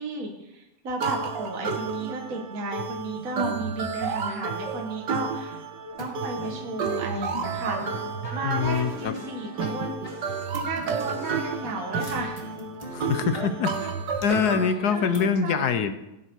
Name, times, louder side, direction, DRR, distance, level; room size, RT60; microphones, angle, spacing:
voice 1, 0.0-5.6 6.0-8.0 8.3-12.4 14.9-15.9, right 3 dB, 55° right, 1 dB, 1.9 m, -34 dB
sound 1, 1.0-14.7, right 5 dB, 85° right, 1.7 m, -31 dB
sound 2, 5.8-13.5 13.7-15.3, equal, 20° left, 2.1 m, -41 dB
voice 2, 8.4-9.2 12.9-13.9 14.2-15.9, left 7 dB, 70° left, 10 dB, 1.3 m, -24 dB
16.5 x 8.4 x 4.6 m, 0.91 s
omnidirectional pair, 1.8 m